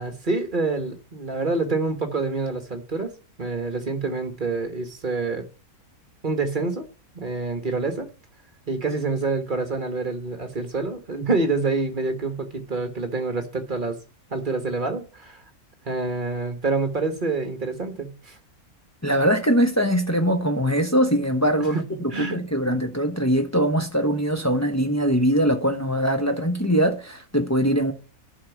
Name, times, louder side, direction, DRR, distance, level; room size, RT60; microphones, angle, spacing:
voice 1, 0.0-3.1 3.4-5.5 6.2-6.8 7.1-8.1 8.7-14.0 14.3-15.4 15.8-18.4 21.7-21.8 22.1-22.5, right 3 dB, 35° right, 1.4 m, -27 dB
voice 2, 19.0-27.9, equal, 15° left, 0.8 m, -22 dB
11.5 x 5.0 x 7.1 m
omnidirectional pair, 1.5 m